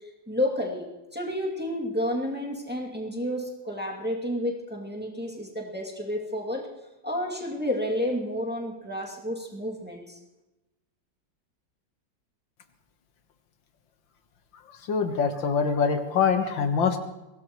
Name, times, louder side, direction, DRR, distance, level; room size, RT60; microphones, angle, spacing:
voice 1, 0.0-6.7 7.0-10.2, left 1 dB, 5° right, -2 dB, 2.4 m, -31 dB
voice 2, 14.7-17.0, left 6 dB, 90° left, 6 dB, 2.1 m, -24 dB
23.0 x 17.5 x 3.1 m, 1.0 s
omnidirectional pair, 2.0 m